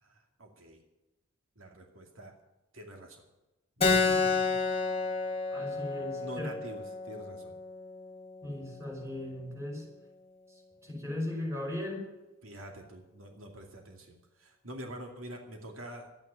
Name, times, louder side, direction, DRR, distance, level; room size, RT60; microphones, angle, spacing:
voice 1, 0.0-0.8 1.6-2.3 2.7-3.2 3.9-4.6 6.2-7.5 12.4-16.1, right 1 dB, 80° right, 3 dB, 2.4 m, -46 dB
Keyboard (musical), 3.8-8.9, left 4 dB, 30° left, 1.7 m, -31 dB
voice 2, 5.5-6.5 8.4-9.9 10.8-12.0, left 1 dB, 15° right, 0 dB, 5.2 m, -37 dB
12.5 x 9.7 x 9.9 m, 0.99 s
head